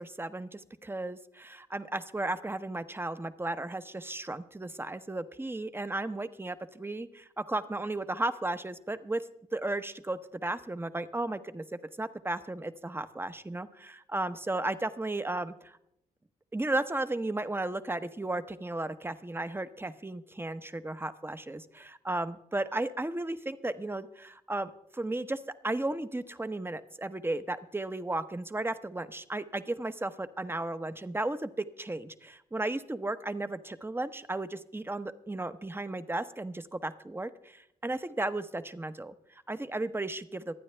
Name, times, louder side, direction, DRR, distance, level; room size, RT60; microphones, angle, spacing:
voice 1, 0.0-9.2 9.5-11.6 12.0-15.8 16.5-40.5, right 2 dB, 15° right, 12 dB, 0.9 m, -34 dB
24.5 x 9.3 x 3.3 m, 0.79 s
cardioid pair, 75°, 16 cm